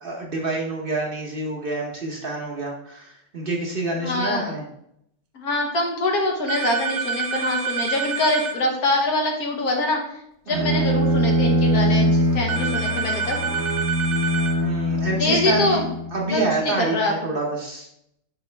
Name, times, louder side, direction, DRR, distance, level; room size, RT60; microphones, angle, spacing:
voice 1, 0.0-4.6 10.5-10.9 14.6-17.9, right 2 dB, 40° right, 0 dB, 1.0 m, -27 dB
voice 2, 4.0-4.5 5.3-10.0 10.5-13.4 15.2-15.9 16.3-17.1, left 2 dB, 80° left, 1 dB, 1.7 m, -24 dB
sound 1, 6.5-8.6 12.5-14.6, right 5 dB, 70° right, 1.1 m, -27 dB
Bowed string instrument, 10.5-16.3, equal, 15° right, 0.7 m, -22 dB
5.9 x 5.3 x 3.3 m, 0.75 s
omnidirectional pair, 1.6 m